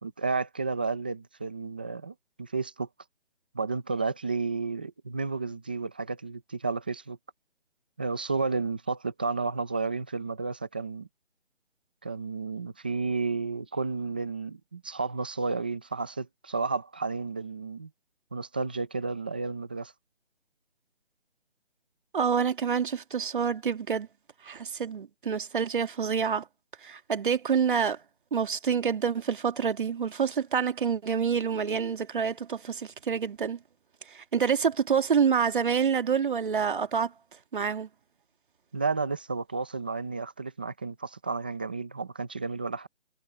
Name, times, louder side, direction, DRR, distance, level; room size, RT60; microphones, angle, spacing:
voice 1, 0.0-2.9 3.5-7.2 8.0-11.1 12.0-17.9 18.3-19.9 38.7-42.9, right 4 dB, 10° right, 0.7 m, -32 dB
voice 2, 22.1-24.1 24.4-26.5 26.8-28.0 28.3-33.6 34.1-37.1 37.5-37.9, right 6 dB, 45° right, 2.0 m, -27 dB
figure-of-eight pair, 165°, 36 cm